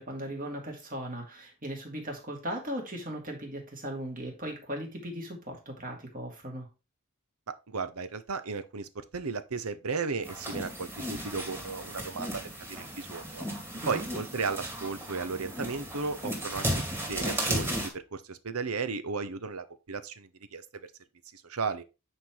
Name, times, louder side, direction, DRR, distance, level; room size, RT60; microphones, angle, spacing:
voice 1, 0.0-6.7 13.8-14.1, right 1 dB, 40° right, 2.6 m, -38 dB
voice 2, 7.5-12.4 12.7-13.5 13.9-16.8 17.1-20.9 21.3-21.8, right 4 dB, 80° right, 0.9 m, -35 dB
sound 1, 10.2-17.9, equal, 10° right, 2.3 m, -35 dB
9.0 x 4.7 x 3.9 m
head